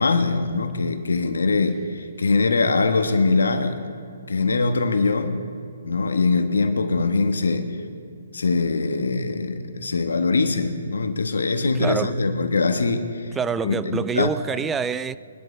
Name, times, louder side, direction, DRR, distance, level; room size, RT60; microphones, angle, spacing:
voice 1, 0.0-3.8 4.3-5.5 5.8-7.8 8.3-13.3 13.6-14.3, left 3 dB, 80° left, 1.4 m, -22 dB
voice 2, 11.7-12.2 13.4-15.2, right 6 dB, 10° right, 0.3 m, -26 dB
23.5 x 11.5 x 3.4 m
hypercardioid pair, 145°, 0 cm